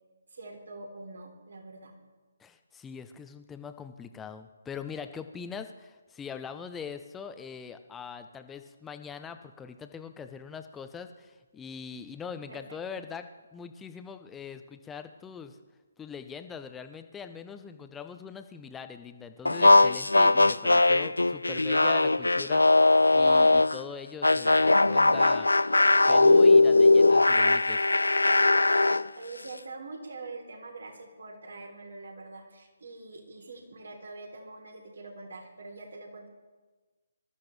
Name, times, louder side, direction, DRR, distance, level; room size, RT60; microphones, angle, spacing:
voice 1, 0.3-2.0 12.5-13.1 28.5-36.3, right 3 dB, 65° right, 2 dB, 3.5 m, -44 dB
voice 2, 2.4-15.6 16.0-22.8 23.1-25.7 26.1-27.9, left 6 dB, 10° left, 9 dB, 0.8 m, -42 dB
sound 1, 19.5-23.8 24.2-29.1, left 2 dB, 80° left, 0.4 m, -20 dB
25.0 x 13.5 x 3.3 m, 1.3 s
figure-of-eight pair, 140°, 0 cm